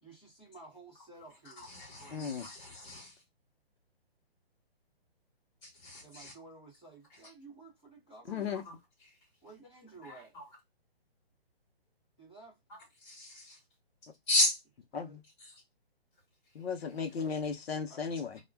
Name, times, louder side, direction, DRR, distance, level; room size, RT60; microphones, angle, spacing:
voice 1, 0.0-2.5 5.9-8.6 9.4-10.4 12.2-12.6 14.9-15.2 17.9-18.0, right 3 dB, 10° left, 0.6 m, -54 dB
voice 2, 1.4-3.2 5.6-6.3 8.6-8.7 9.0-9.2 10.0-10.4 13.0-13.6 14.3-14.6 15.4-15.6, left 2 dB, 30° left, 1.3 m, -34 dB
voice 3, 2.1-2.5 8.3-8.6 14.9-15.2 16.5-18.4, left 6 dB, 75° left, 0.8 m, -35 dB
2.3 x 2.2 x 3.1 m
hypercardioid pair, 175°, 31 cm